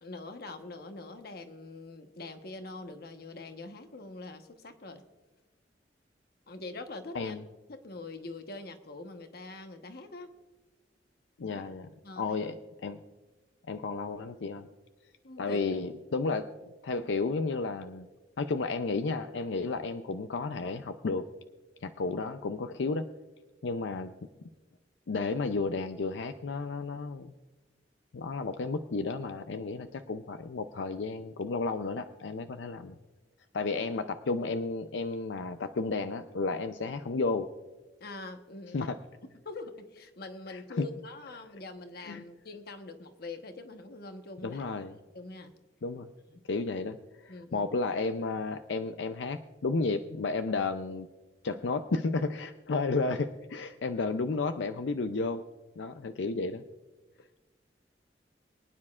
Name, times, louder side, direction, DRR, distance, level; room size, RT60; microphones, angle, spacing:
voice 1, 0.0-5.0 6.5-7.4 7.7-10.3 11.5-11.6 12.0-12.4 15.2-15.8 38.0-38.9 39.4-44.6 45.1-45.6 46.3-46.4 47.3-47.7, left 2 dB, 60° left, 6 dB, 1.1 m, -44 dB
voice 2, 11.4-11.9 12.2-12.6 12.8-13.0 13.7-14.7 15.4-16.5 16.8-18.1 18.4-21.3 21.8-23.1 23.6-24.1 25.1-27.3 28.1-33.0 33.5-37.5 38.7-39.0 40.5-40.9 42.0-42.2 44.4-45.0 45.8-46.1 46.5-51.1 51.4-55.4 55.8-56.6, left 3 dB, 85° left, 9 dB, 0.5 m, -32 dB
23.5 x 9.7 x 2.4 m, 1.2 s
head